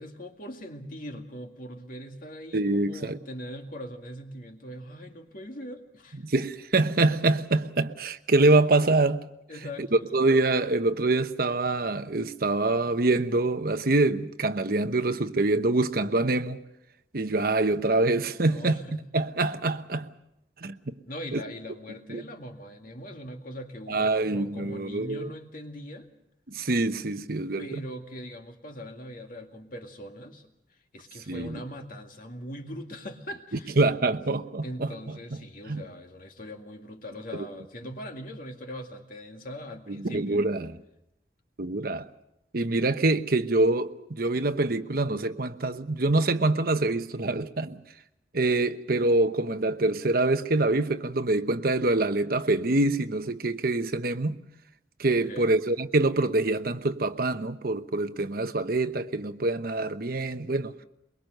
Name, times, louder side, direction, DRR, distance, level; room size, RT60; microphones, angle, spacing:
voice 1, 0.0-6.2 9.5-10.2 18.4-19.1 21.1-26.1 27.6-30.5 30.9-33.7 34.6-40.4 55.1-55.5, equal, 50° left, 2.2 m, -41 dB
voice 2, 2.5-3.2 6.2-9.2 9.9-16.6 17.1-20.1 20.6-20.9 21.3-21.4 22.1-22.2 23.9-25.3 26.5-27.8 31.3-31.6 33.8-35.2 35.7-35.8 37.3-37.5 39.9-40.8 41.6-42.1 42.5-47.8 48.3-54.4 55.0-60.7, right 2 dB, 55° right, 1.0 m, -25 dB
23.0 x 22.5 x 6.6 m
head